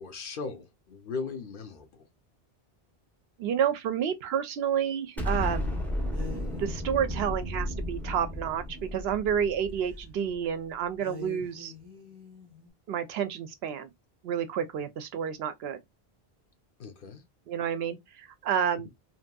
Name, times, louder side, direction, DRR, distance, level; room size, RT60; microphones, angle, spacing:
voice 1, 0.0-2.1 16.8-17.2, left 4 dB, 60° left, 0.8 m, -38 dB
voice 2, 3.4-5.7 6.6-11.7 12.9-13.9 14.2-15.8 17.5-18.9, right 8 dB, 75° right, 0.8 m, -30 dB
Explosion, 5.2-10.3, left 1 dB, ahead, 0.5 m, -33 dB
sound 1, 6.1-9.6 9.9-10.0 11.0-12.7, left 4 dB, 25° right, 0.8 m, -47 dB
2.8 x 2.6 x 2.2 m
omnidirectional pair, 1.1 m